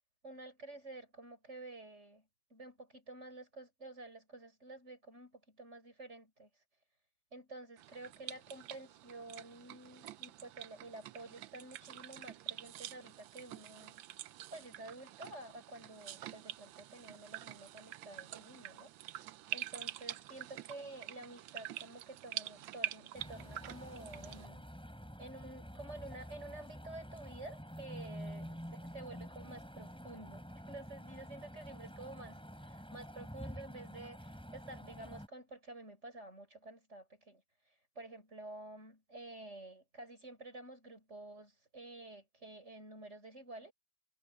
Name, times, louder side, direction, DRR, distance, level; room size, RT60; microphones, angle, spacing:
voice 1, 0.2-6.5 7.3-14.0 14.5-18.9 19.5-24.7 25.2-37.4 38.0-43.7, right 2 dB, 35° right, 7.3 m, -50 dB
sound 1, 7.8-24.5, right 13 dB, 85° right, 1.4 m, -46 dB
sound 2, 23.1-35.3, equal, ahead, 6.4 m, -48 dB
omnidirectional pair, 2.1 m